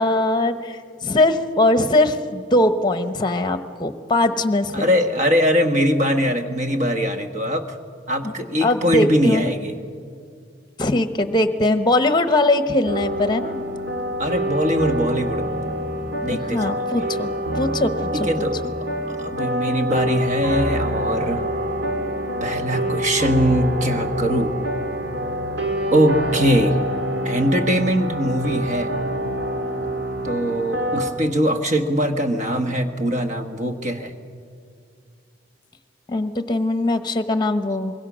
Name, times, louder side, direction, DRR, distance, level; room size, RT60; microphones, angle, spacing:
voice 1, 0.0-4.9 8.2-8.3 8.6-9.5 10.8-13.6 16.3-18.3 36.1-37.9, left 2 dB, 20° left, 10 dB, 1.0 m, -21 dB
voice 2, 4.7-7.8 8.1-9.7 14.2-15.4 16.2-16.9 18.1-18.6 19.1-21.4 22.4-24.5 25.9-26.7 27.2-28.9 30.2-34.1, equal, 40° right, 7 dB, 1.5 m, -21 dB
sound 1, 12.8-31.1, equal, 65° right, 2.3 m, -26 dB
25.5 x 22.0 x 6.3 m, 2.3 s
head